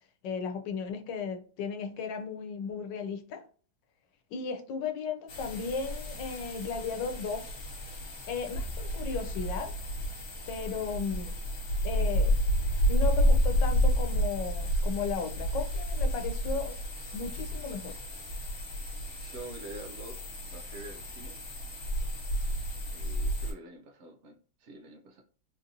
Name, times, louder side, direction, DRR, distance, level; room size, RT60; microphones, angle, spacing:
voice 1, 0.2-3.4 4.3-7.6 8.3-9.8 10.5-11.4 11.8-12.4 12.9-16.7 17.1-18.0, left 5 dB, 80° left, 1.3 m, -35 dB
sound 1, 5.3-23.5, equal, 55° left, 1.5 m, -31 dB
voice 2, 19.2-20.2 20.5-21.4 22.9-25.2, right 2 dB, 75° right, 0.6 m, -46 dB
3.8 x 2.6 x 2.7 m
omnidirectional pair, 1.9 m